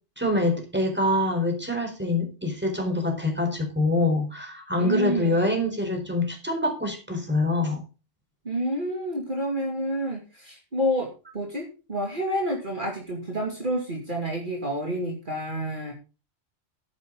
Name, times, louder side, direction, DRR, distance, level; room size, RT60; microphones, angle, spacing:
voice 1, 0.2-7.8, left 2 dB, 10° right, 3 dB, 4.2 m, -25 dB
voice 2, 4.8-5.5 8.4-15.9, equal, 40° right, 0 dB, 2.7 m, -29 dB
13.0 x 10.5 x 3.9 m, 0.33 s
omnidirectional pair, 1.3 m